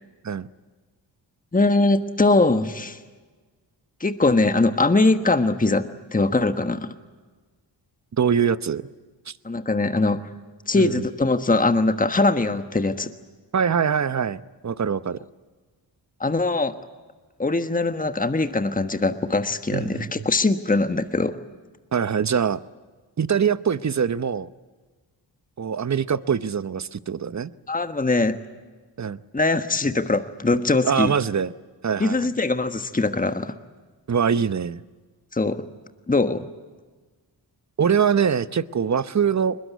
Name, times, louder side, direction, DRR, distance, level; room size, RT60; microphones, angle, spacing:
voice 1, 1.5-3.0 4.0-6.9 9.4-10.2 10.7-13.1 16.2-16.7 17.4-21.4 27.7-28.4 29.3-31.1 32.0-33.5 35.3-35.6 36.1-36.5, left 3 dB, 20° left, 1.4 m, -21 dB
voice 2, 8.1-8.8 9.3-9.4 10.7-11.0 13.5-15.2 19.7-20.2 21.9-22.6 23.2-24.5 25.6-27.5 29.0-29.2 30.9-31.5 31.8-32.3 34.1-34.8 37.8-39.6, right 7 dB, 40° right, 0.9 m, -23 dB
22.0 x 21.0 x 9.3 m
cardioid pair, 50°, 44 cm